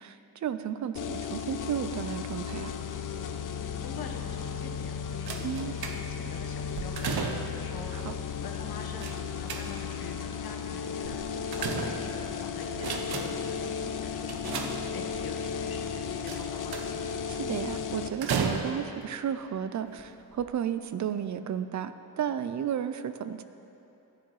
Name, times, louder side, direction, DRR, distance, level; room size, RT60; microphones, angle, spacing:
voice 1, 0.0-2.7 5.4-5.7 7.9-8.1 17.3-23.4, right 9 dB, 50° right, 11 dB, 0.4 m, -33 dB
sound 1, 0.9-18.1, left 7 dB, 60° left, 0.6 m, -35 dB
voice 2, 3.8-9.1 9.4-14.5 14.9-16.8, left 4 dB, 80° left, 1 dB, 1.2 m, -45 dB
sound 2, 5.3-6.3 6.7-7.7 9.0-10.0 11.0-12.3 12.7-13.5 14.3-15.3 16.3-17.1 18.2-19.0 19.9-20.0 20.3-20.4, right 5 dB, 85° right, 0.8 m, -34 dB
14.0 x 9.7 x 3.1 m, 2.9 s
wide cardioid pair, 125°, 36 cm